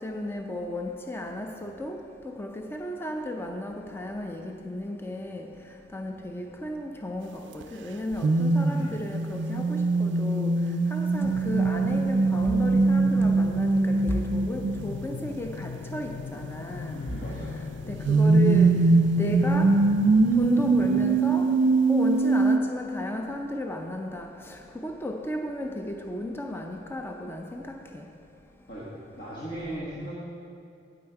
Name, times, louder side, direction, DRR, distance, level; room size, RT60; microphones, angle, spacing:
voice 1, 0.0-17.0 17.3-18.9 19.2-19.8 20.4-21.6 21.9-28.1, left 1 dB, 10° left, 0.4 m, -34 dB
sound 1, 7.6-7.7 8.2-14.8 18.0-22.6, right 3 dB, 70° right, 0.4 m, -22 dB
voice 2, 8.7-9.0 16.9-17.6 28.7-28.9 29.1-30.1, right 1 dB, 55° left, 1.5 m, -37 dB
sound 2, 11.2-21.1, left 5 dB, 85° left, 0.4 m, -38 dB
9.0 x 8.6 x 4.6 m
head